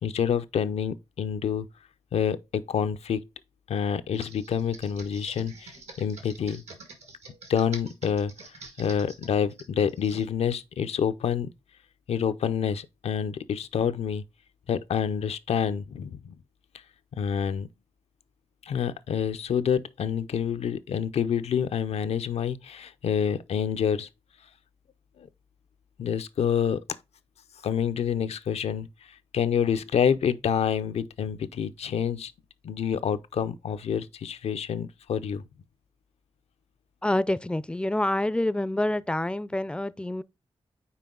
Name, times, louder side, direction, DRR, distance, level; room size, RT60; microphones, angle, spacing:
voice 1, 0.0-1.7 2.1-3.2 3.7-6.6 7.5-8.3 8.8-11.5 12.1-14.2 14.7-16.4 17.1-17.7 18.6-24.1 25.2-25.3 26.0-26.8 27.6-28.9 29.3-32.3 32.6-35.4, left 7 dB, 80° left, 0.5 m, -27 dB
Computer keyboard, 4.1-10.2, right 3 dB, 90° right, 1.9 m, -47 dB
voice 2, 37.0-40.2, left 1 dB, 10° left, 0.4 m, -27 dB
5.6 x 4.6 x 3.7 m
wide cardioid pair, 100°, 11 cm